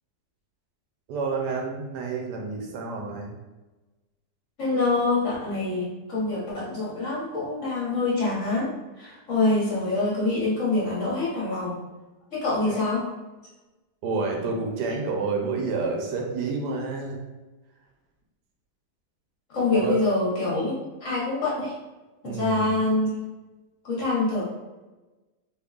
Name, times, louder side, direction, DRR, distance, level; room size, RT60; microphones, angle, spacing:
voice 1, 1.1-3.3 12.7-12.8 14.0-17.2 19.7-20.0 22.2-22.7, right 4 dB, 80° right, 0 dB, 1.2 m, -29 dB
voice 2, 4.6-8.7 9.0-11.8 12.3-13.1 19.5-21.7 22.2-23.2 23.8-24.4, left 2 dB, 55° left, -6 dB, 1.3 m, -25 dB
3.5 x 3.0 x 2.4 m, 1.1 s
omnidirectional pair, 1.8 m